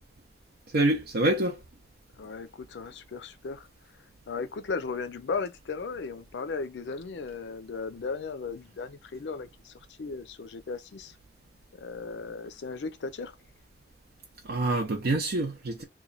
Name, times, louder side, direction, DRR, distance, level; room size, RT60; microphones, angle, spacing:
voice 1, 0.7-1.6 14.4-15.8, right 2 dB, 65° right, 0.6 m, -26 dB
voice 2, 2.2-4.0 4.3-11.2 11.7-13.4, left 4 dB, 80° left, 0.4 m, -36 dB
3.0 x 2.2 x 3.8 m
head